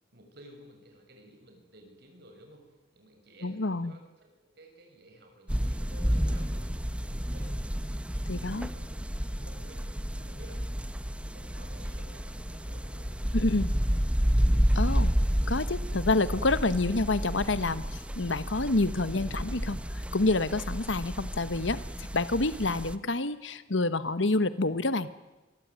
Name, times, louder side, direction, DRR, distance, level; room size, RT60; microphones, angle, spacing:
voice 1, 0.1-7.5 8.3-10.6 11.0-14.1, right 1 dB, 60° right, 3 dB, 6.6 m, -55 dB
voice 2, 3.4-3.9 8.3-8.7 13.3-13.7 14.7-15.1 15.5-25.1, left 2 dB, 80° left, 13 dB, 1.3 m, -28 dB
sound 1, 5.5-22.9, equal, 5° right, 1.0 m, -30 dB
26.0 x 23.5 x 9.6 m, 1.1 s
head